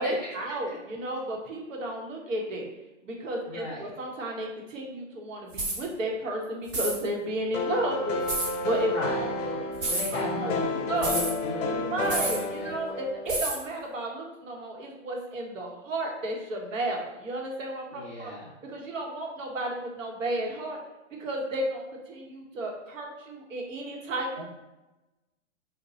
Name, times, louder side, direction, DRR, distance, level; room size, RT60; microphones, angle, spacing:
voice 1, 0.0-2.7 3.0-8.2 8.6-8.9 9.2-9.3 9.8-10.5 10.9-11.2 11.9-18.3 18.6-20.8 21.2-24.4, right 1 dB, 80° right, 0 dB, 1.0 m, -33 dB
voice 2, 3.4-3.9 8.9-12.8 17.9-18.5 24.4-24.5, left 1 dB, 15° left, -11 dB, 0.4 m, -36 dB
sound 1, 5.5-5.8 6.7-7.0 8.3-8.5 9.8-10.1 11.0-11.3 12.1-12.4 13.3-13.6, right 2 dB, 45° right, 1.0 m, -29 dB
sound 2, 7.5-13.4, left 2 dB, 80° left, 0.7 m, -31 dB
2.9 x 2.2 x 4.1 m, 1.0 s
hypercardioid pair, 155°, 38 cm